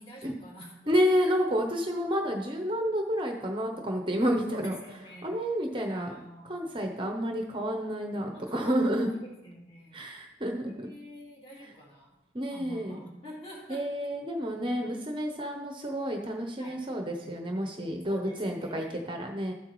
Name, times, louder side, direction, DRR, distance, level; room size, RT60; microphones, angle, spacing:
voice 1, 0.0-0.8 4.5-5.4 5.8-6.7 8.3-10.0 10.6-12.2 12.5-13.9 14.5-14.9 16.6-16.8 18.0-19.0, equal, 30° left, -4 dB, 2.7 m, -47 dB
voice 2, 0.9-4.7 5.2-6.1 6.5-9.1 9.9-10.9 12.3-13.0 13.7-19.5, equal, 25° right, 2 dB, 0.7 m, -30 dB
12.5 x 7.9 x 3.1 m, 0.97 s
head